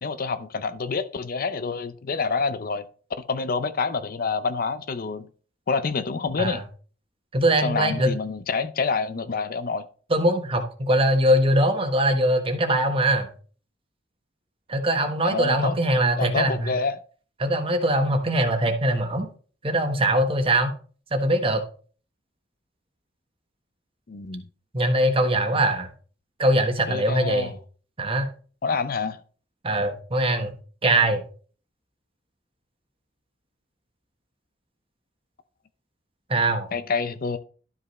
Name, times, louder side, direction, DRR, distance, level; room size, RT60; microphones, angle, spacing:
voice 1, 0.0-2.8 3.2-5.3 5.7-6.6 7.6-9.9 15.2-17.0 24.1-24.5 26.9-27.5 28.6-29.2 36.7-37.4, left 4 dB, 50° left, 0.6 m, -27 dB
voice 2, 7.3-8.2 10.1-13.3 14.7-16.7 17.4-19.3 19.6-20.7 21.1-21.6 24.7-25.9 26.4-27.5 28.0-28.3 29.6-30.5 30.8-31.2 36.3-36.7, right 1 dB, 30° right, 1.2 m, -22 dB
12.0 x 5.4 x 3.2 m
head